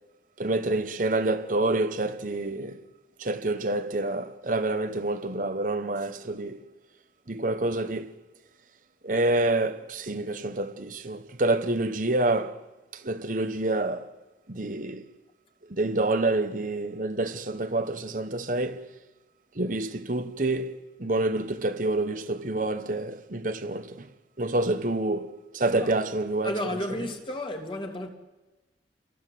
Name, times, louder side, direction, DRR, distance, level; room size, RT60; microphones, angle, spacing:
voice 1, 0.4-2.8 3.2-6.6 7.3-8.1 9.0-12.6 12.9-14.1 14.5-15.1 15.7-18.9 19.5-24.1 24.4-26.5, right 2 dB, 45° right, 1.1 m, -27 dB
voice 2, 26.4-28.1, left 1 dB, 30° left, 2.6 m, -32 dB
29.0 x 23.0 x 7.8 m
head